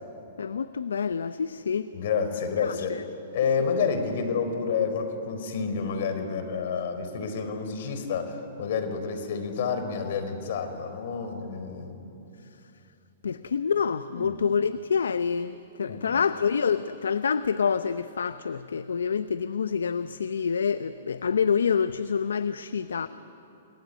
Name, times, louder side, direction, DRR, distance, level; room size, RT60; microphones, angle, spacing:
voice 1, 0.4-1.9 2.6-3.0 3.6-3.7 13.2-23.1, left 6 dB, 80° left, 0.7 m, -27 dB
voice 2, 1.9-3.0 3.3-12.2 14.1-14.4 15.9-16.2, left 5 dB, 60° left, 4.4 m, -29 dB
29.0 x 21.0 x 9.6 m
hypercardioid pair, 120°, 0 cm